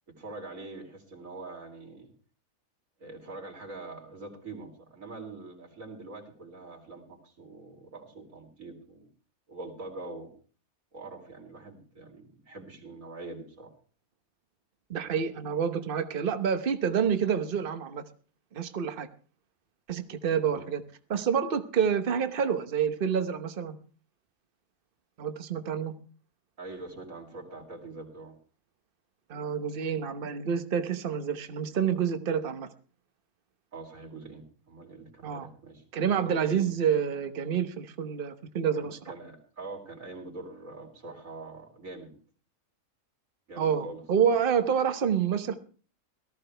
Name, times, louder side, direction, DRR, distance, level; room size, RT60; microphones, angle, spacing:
voice 1, 0.1-2.1 3.0-9.1 9.5-10.3 10.9-13.7 15.0-15.2 20.5-20.7 26.6-28.4 33.7-35.8 36.1-36.7 38.8-42.2 43.5-44.0, right 3 dB, 70° right, 1 dB, 3.9 m, -44 dB
voice 2, 14.9-18.0 18.5-19.1 19.9-20.8 21.1-23.8 25.2-25.9 29.3-32.7 35.2-35.5 35.9-39.0 43.6-45.6, right 7 dB, 45° right, 9 dB, 1.1 m, -28 dB
18.0 x 14.0 x 3.4 m, 0.40 s
omnidirectional pair, 1.5 m